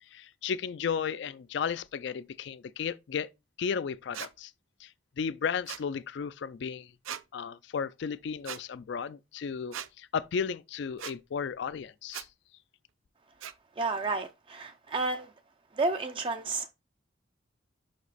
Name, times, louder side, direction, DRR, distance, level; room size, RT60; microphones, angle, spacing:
voice 1, 0.1-3.3 3.6-4.5 4.8-4.9 5.2-6.9 7.3-12.3, left 6 dB, 60° left, 0.3 m, -34 dB
sound 1, 4.1-4.3 5.7-5.9 7.0-7.2 8.4-8.6 9.7-9.9 11.0-11.2 12.1-12.3 13.4-13.5, right 10 dB, 90° right, 0.5 m, -39 dB
voice 2, 13.8-15.3 15.7-16.7, right 3 dB, 25° right, 0.4 m, -31 dB
5.7 x 5.1 x 4.0 m
head